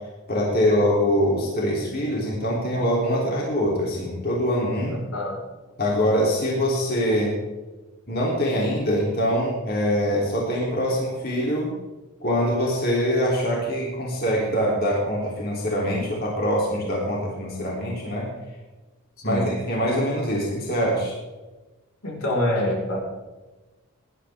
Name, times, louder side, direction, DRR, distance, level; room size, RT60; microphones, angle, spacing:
voice 1, 0.3-4.9 5.8-7.3 8.1-11.7 12.2-18.3 19.2-21.1, equal, 45° left, -4 dB, 3.4 m, -24 dB
voice 2, 5.1-5.4 19.2-19.5 22.0-23.0, left 1 dB, 75° left, -2 dB, 5.0 m, -26 dB
19.5 x 11.5 x 3.7 m, 1.2 s
head